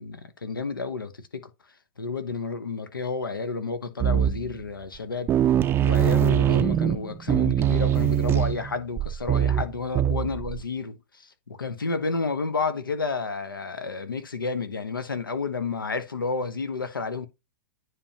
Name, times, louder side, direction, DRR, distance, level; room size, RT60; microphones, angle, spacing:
voice 1, 0.0-1.5 2.0-5.3 5.8-17.3, left 4 dB, 90° left, 1.1 m, -31 dB
sound 1, 4.0-4.6 5.0-5.1 5.3-10.6, right 10 dB, 20° right, 0.4 m, -22 dB
9.8 x 3.8 x 2.9 m
hypercardioid pair, 110°, 11 cm